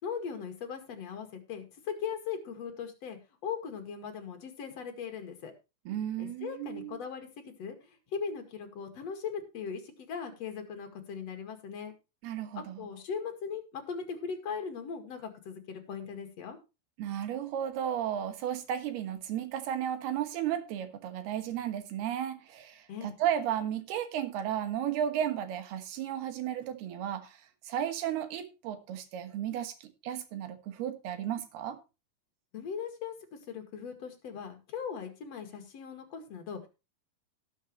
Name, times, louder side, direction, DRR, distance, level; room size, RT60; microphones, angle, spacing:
voice 1, 0.0-5.5 6.2-11.9 12.8-16.6 22.9-23.2 32.5-33.1 33.5-36.7, left 6 dB, 50° left, 2.8 m, -39 dB
voice 2, 5.9-7.0 12.2-12.8 17.0-27.4 27.6-31.8, right 10 dB, 85° right, 3.4 m, -34 dB
18.0 x 7.2 x 3.1 m
omnidirectional pair, 4.4 m